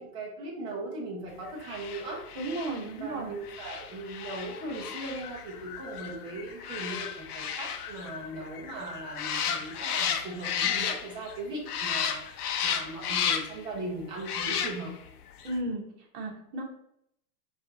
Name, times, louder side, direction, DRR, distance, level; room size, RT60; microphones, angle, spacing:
voice 1, 0.0-2.2 3.0-14.9, right 2 dB, 10° right, -3 dB, 0.4 m, -38 dB
sound 1, 1.6-11.4 11.7-13.7 14.2-15.1 15.4-15.5, left 8 dB, 65° left, 0.7 m, -33 dB
voice 2, 2.4-3.4 15.4-15.8 16.1-16.6, right 2 dB, 30° right, 1 dB, 0.9 m, -34 dB
5.4 x 2.5 x 3.8 m, 0.73 s
hypercardioid pair, 145°, 48 cm